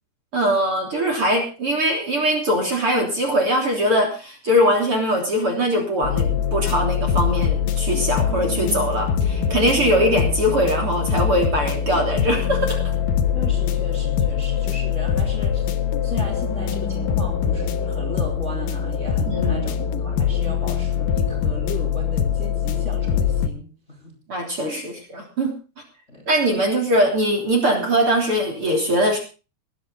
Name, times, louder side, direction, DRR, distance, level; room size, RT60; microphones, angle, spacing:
voice 1, 0.3-12.9 19.3-19.5 24.3-25.5 26.3-29.2, equal, 35° right, 1 dB, 3.8 m, -21 dB
sound 1, 6.0-23.5, left 7 dB, 65° left, 2.5 m, -23 dB
voice 2, 13.3-15.7 16.0-24.1 24.5-24.8 26.1-26.3, equal, 20° left, 2 dB, 3.2 m, -36 dB
21.0 x 11.0 x 4.0 m, 0.34 s
omnidirectional pair, 4.8 m